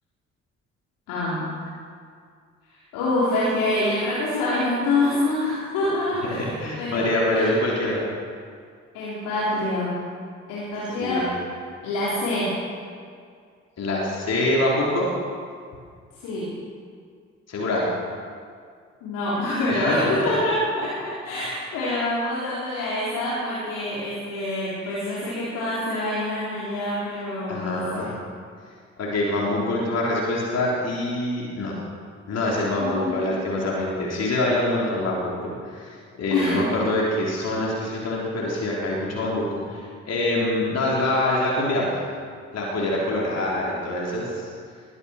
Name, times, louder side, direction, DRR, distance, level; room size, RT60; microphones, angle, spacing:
voice 1, 1.1-1.5 2.7-7.5 8.9-9.9 10.5-11.3 11.8-12.6 16.1-16.5 19.0-28.1 32.8-33.4 36.3-36.7, left 1 dB, 60° left, -8 dB, 3.9 m, -26 dB
voice 2, 6.2-8.0 11.0-11.3 13.8-15.1 17.5-17.9 19.7-20.1 27.5-28.1 29.0-31.7 32.3-41.9 42.5-44.5, left 1 dB, 45° left, -4 dB, 3.9 m, -25 dB
21.5 x 9.7 x 6.5 m, 2.2 s
figure-of-eight pair, 45°, 35 cm